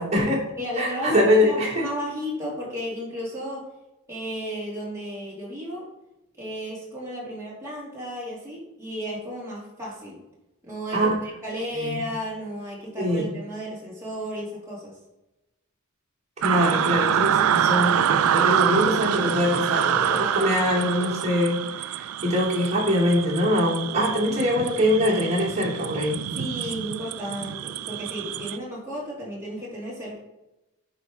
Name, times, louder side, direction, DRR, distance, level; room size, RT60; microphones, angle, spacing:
voice 1, 0.0-0.4 0.8-1.8 10.9-11.1 11.7-12.0 13.0-13.3 16.4-26.2, equal, 30° right, -5 dB, 2.5 m, -23 dB
voice 2, 0.6-3.7 4.1-5.9 6.3-10.2 10.6-15.0 20.2-20.6 26.3-30.2, equal, 15° right, -7 dB, 2.7 m, -34 dB
sound 1, 16.4-28.6, right 9 dB, 75° right, 0.3 m, -26 dB
9.2 x 3.3 x 5.1 m, 0.94 s
head